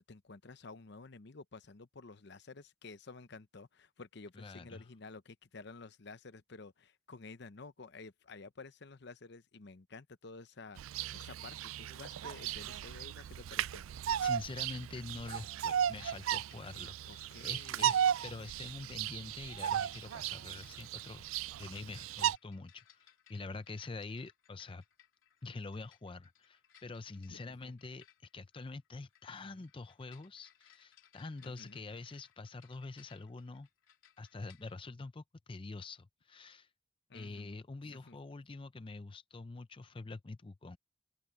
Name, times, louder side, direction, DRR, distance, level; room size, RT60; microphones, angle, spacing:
voice 1, 0.0-13.9 17.1-18.0 18.4-18.5 27.3-27.7 29.4-29.7 31.4-31.8 37.1-38.2, left 3 dB, 55° left, 0.8 m, -52 dB
voice 2, 4.4-4.8 14.2-21.2 21.6-24.8 25.4-28.0 28.3-33.7 34.2-36.7 37.1-40.8, left 3 dB, 25° left, 0.5 m, -46 dB
Bird vocalization bird call bird song, 10.8-22.4, right 10 dB, 90° right, 0.3 m, -36 dB
sound 1, 16.0-34.8, left 10 dB, 80° left, 3.0 m, -66 dB
open air
head